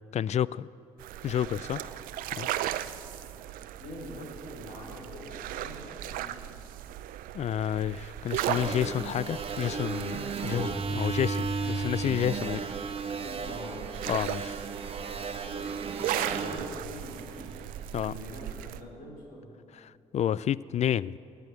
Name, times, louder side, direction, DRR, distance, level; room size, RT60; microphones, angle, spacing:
voice 1, 0.1-0.7 1.2-1.8 2.3-2.5 7.3-12.6 14.1-14.6 17.9-18.1 19.7-21.2, left 10 dB, 50° left, 21 dB, 0.4 m, -30 dB
sound 1, 1.0-18.8, right 12 dB, 75° right, 0.6 m, -38 dB
voice 2, 3.8-6.5 13.1-13.9 15.4-15.7 16.2-17.5 18.0-19.6, left 1 dB, 80° left, -4 dB, 4.5 m, -44 dB
sound 2, 8.3-17.8, right 4 dB, 40° right, 1.3 m, -35 dB
17.0 x 9.2 x 7.8 m, 2.6 s
hypercardioid pair, 50°, 15 cm